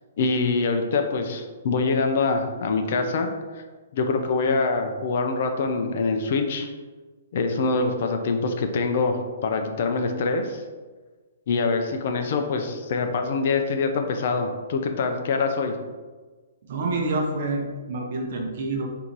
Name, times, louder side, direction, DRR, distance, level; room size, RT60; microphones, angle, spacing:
voice 1, 0.2-3.3 3.5-3.6 3.9-6.7 7.3-10.6 11.5-15.7, left 4 dB, 45° left, 5 dB, 0.4 m, -24 dB
voice 2, 16.7-18.9, right 2 dB, 45° right, 2 dB, 0.7 m, -27 dB
3.9 x 2.7 x 4.5 m, 1.3 s
hypercardioid pair, 175°, 0 cm